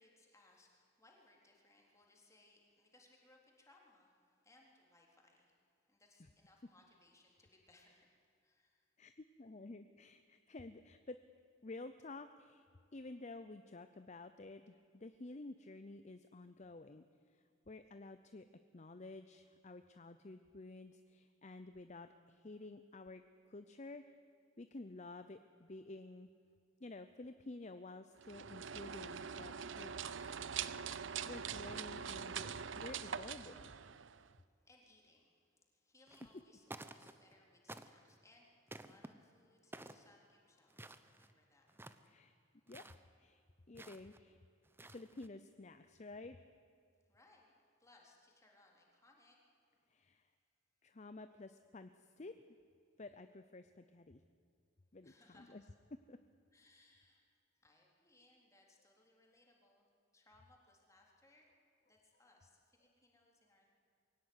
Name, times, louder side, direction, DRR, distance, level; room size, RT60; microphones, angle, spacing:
voice 1, 0.0-8.9 34.3-38.5 38.8-41.7 42.0-42.2 47.0-49.4 55.0-55.6 56.5-57.2 57.5-59.9 60.1-61.5 61.9-63.7, left 2 dB, 15° left, -1 dB, 3.7 m, -68 dB
voice 2, 9.0-11.2 11.6-12.7 12.9-18.5 18.7-24.0 24.6-26.3 26.8-30.3 31.3-33.7 42.0-42.3 42.7-42.8 43.2-44.4 44.9-46.4 49.9-50.3 50.8-51.9 52.2-52.4 53.0-54.2 54.9-55.6 56.1-56.2, left 2 dB, 35° left, 10 dB, 0.6 m, -52 dB
sound 1, 28.2-34.4, right 7 dB, 65° right, 0.7 m, -44 dB
sound 2, 36.1-36.4 36.7-37.3 37.7-38.2 38.7-39.1 39.7-40.1 40.7-41.3 41.7-42.1 42.7-43.0 43.8-44.2 44.6-45.3, right 2 dB, 10° right, 0.8 m, -53 dB
22.5 x 17.0 x 9.6 m, 2.5 s
head